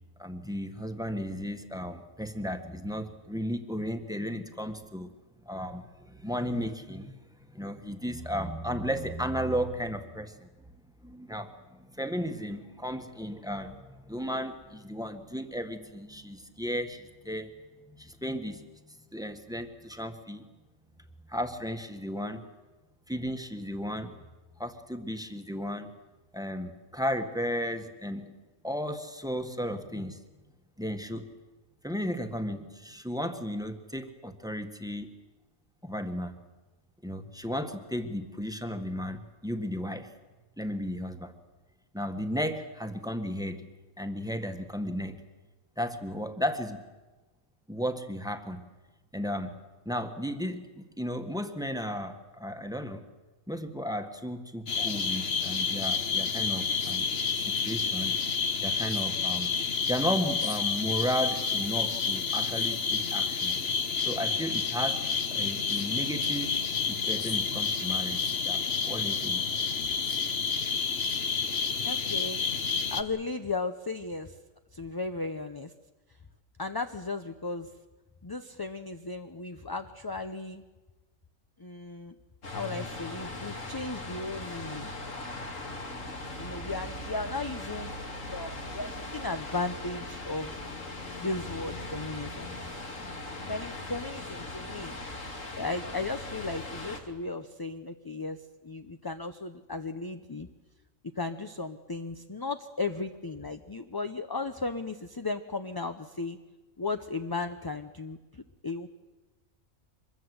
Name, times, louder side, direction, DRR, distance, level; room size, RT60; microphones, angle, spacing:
voice 1, 0.2-5.1 5.4-7.2 7.5-10.5 11.0-17.5 17.9-20.4 21.3-22.4 23.1-24.1 24.6-25.9 26.3-28.3 28.6-30.2 30.8-31.3 31.8-35.1 35.8-36.4 37.0-40.1 40.6-41.3 41.9-43.6 44.0-45.2 45.8-46.8 47.7-48.7 49.1-49.6 49.8-53.0 53.5-58.2 58.6-59.6 59.9-63.6 64.0-65.0 65.3-66.5 66.9-69.4, equal, 5° right, 7 dB, 1.4 m, -34 dB
sound 1, 54.7-73.0, left 5 dB, 50° left, 1.3 m, -29 dB
voice 2, 71.8-72.4 72.9-74.4 74.7-75.7 76.6-77.7 78.2-80.6 81.6-82.1 82.5-84.9 86.4-87.9 88.3-90.6 91.2-92.6 93.4-95.0 95.5-100.5 101.2-106.4 106.8-108.9, left 3 dB, 20° left, 8 dB, 0.6 m, -35 dB
sound 2, 82.4-97.0, left 2 dB, 70° left, 3.0 m, -39 dB
25.0 x 21.5 x 8.0 m, 1.2 s
omnidirectional pair, 1.4 m